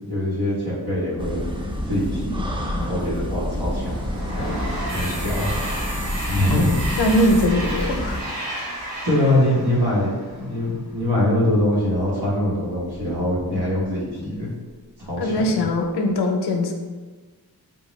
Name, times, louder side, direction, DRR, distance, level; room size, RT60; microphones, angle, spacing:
voice 1, 0.0-1.4 1.9-2.5 2.7-4.0 4.3-4.5 4.9-5.5 6.3-6.7 9.0-14.5 15.0-15.6, left 1 dB, 80° right, -6 dB, 1.2 m, -23 dB
sound 1, 1.2-8.2, equal, 15° right, 0.3 m, -28 dB
Train, 3.2-10.7, right 1 dB, 50° right, 1.4 m, -33 dB
sound 2, 4.9-7.5 9.5-9.6 10.0-10.1 10.3-10.4 10.8-12.1 12.5-14.0 14.3-14.4 15.0-15.4 15.8-15.9, right 2 dB, 30° right, 0.7 m, -39 dB
voice 2, 6.5-8.2 15.2-16.7, left 1 dB, 90° left, 4 dB, 0.5 m, -21 dB
3.8 x 2.2 x 3.0 m, 1.4 s
wide cardioid pair, 110°, 39 cm